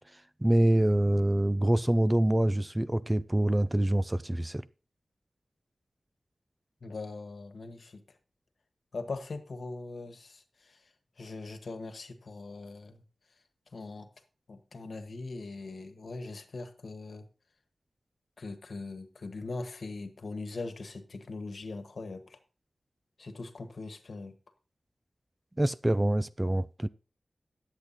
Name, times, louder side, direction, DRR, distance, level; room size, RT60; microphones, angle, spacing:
voice 1, 0.1-4.6 25.6-26.9, right 1 dB, 15° right, 0.4 m, -26 dB
voice 2, 6.8-8.0 8.9-10.8 11.2-13.0 13.7-14.1 14.5-17.3 18.4-22.4 23.2-24.3, left 3 dB, 65° left, 1.4 m, -41 dB
10.5 x 8.1 x 4.1 m
wide cardioid pair, 105°, 0 cm